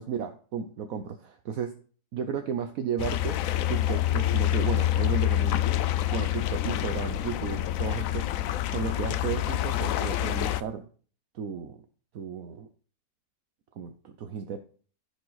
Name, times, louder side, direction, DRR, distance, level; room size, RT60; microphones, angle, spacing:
voice 1, 0.0-1.8 2.1-3.4 3.7-5.6 6.1-10.9 11.3-11.8 12.1-12.7 13.8-14.6, right 7 dB, 65° right, 7 dB, 1.1 m, -34 dB
sound 1, 3.0-10.6, left 13 dB, 70° left, 0.9 m, -27 dB
15.0 x 5.2 x 4.0 m, 0.43 s
omnidirectional pair, 1.6 m